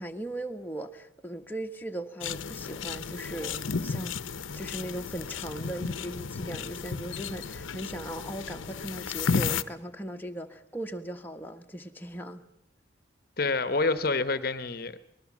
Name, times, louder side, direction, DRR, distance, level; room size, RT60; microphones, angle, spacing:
voice 1, 0.0-4.2 4.5-12.4, right 1 dB, 10° left, 1.2 m, -38 dB
sound 1, 2.2-9.6, left 5 dB, 85° left, 0.9 m, -33 dB
voice 2, 13.4-15.1, left 3 dB, 50° left, 1.0 m, -28 dB
26.5 x 20.0 x 7.3 m
head